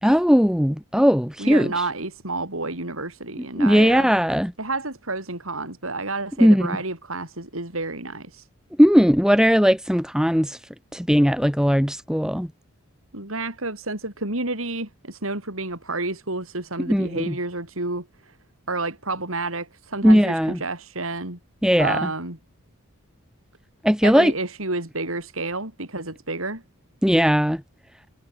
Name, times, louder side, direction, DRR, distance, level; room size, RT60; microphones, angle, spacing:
voice 1, 0.0-1.7 3.6-4.5 6.4-6.8 8.8-10.6 10.9-12.5 16.9-17.3 20.0-20.6 21.6-22.0 23.8-24.3 27.0-27.6, equal, 5° right, 3.0 m, -18 dB
voice 2, 1.4-4.1 4.6-8.5 13.1-18.4 18.7-21.4 21.8-22.4 24.0-26.6, right 2 dB, 80° right, 6.2 m, -30 dB
head